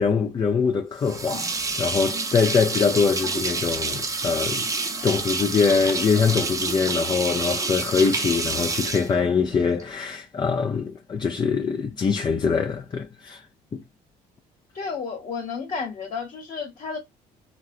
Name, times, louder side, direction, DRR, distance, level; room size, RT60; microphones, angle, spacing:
voice 1, 0.0-4.7 5.0-13.4 13.7-13.8, left 5 dB, 25° left, 0.4 m, -23 dB
sound 1, 1.0-9.8, right 3 dB, 20° right, 0.7 m, -28 dB
voice 2, 14.7-17.0, left 5 dB, 45° left, 1.1 m, -32 dB
3.5 x 2.2 x 2.4 m
cardioid pair, 110°, 17 cm